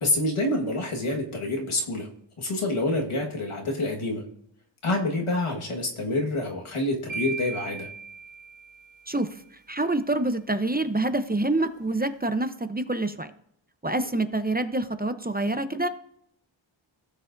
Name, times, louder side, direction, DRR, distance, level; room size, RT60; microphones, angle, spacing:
voice 1, 0.0-2.1 2.4-4.2 4.8-7.9, left 2 dB, 90° left, 0 dB, 1.7 m, -27 dB
sound 1, 7.1-9.2, right 5 dB, 75° right, 2.0 m, -37 dB
voice 2, 9.7-13.3 13.8-15.9, right 2 dB, 20° right, 10 dB, 0.8 m, -26 dB
16.5 x 6.9 x 2.6 m, 0.70 s
cardioid pair, 45°, 49 cm